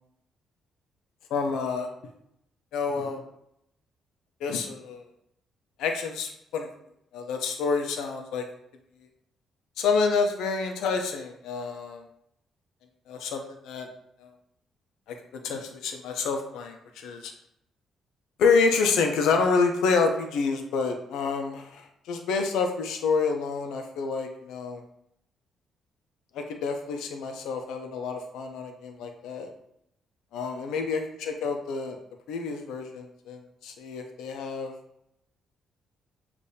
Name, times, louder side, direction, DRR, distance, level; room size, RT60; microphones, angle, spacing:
voice 1, 1.3-1.9 2.7-3.2 4.4-5.0 5.8-6.7 7.1-8.4 9.8-12.0 13.1-13.9 14.2-14.3 15.3-17.3 18.4-24.8 26.3-29.5 30.3-32.0 32.3-34.7, left 4 dB, 85° left, 4 dB, 0.5 m, -28 dB
6.5 x 2.5 x 2.7 m, 0.76 s
cardioid pair, 90°, 0 cm